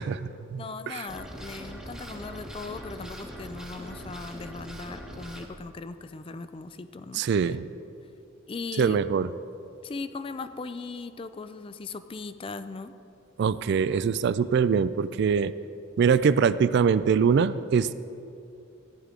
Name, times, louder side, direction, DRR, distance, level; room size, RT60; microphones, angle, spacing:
voice 1, 0.0-1.0 7.1-7.7 8.8-9.3 13.4-15.5 16.0-17.9, right 6 dB, 60° right, 15 dB, 0.3 m, -23 dB
voice 2, 0.6-7.6 8.5-9.0 9.8-12.9, left 4 dB, 25° left, 11 dB, 0.3 m, -38 dB
sound 1, 1.1-5.5, equal, 5° right, 1.0 m, -41 dB
14.5 x 10.5 x 3.7 m, 2.7 s
head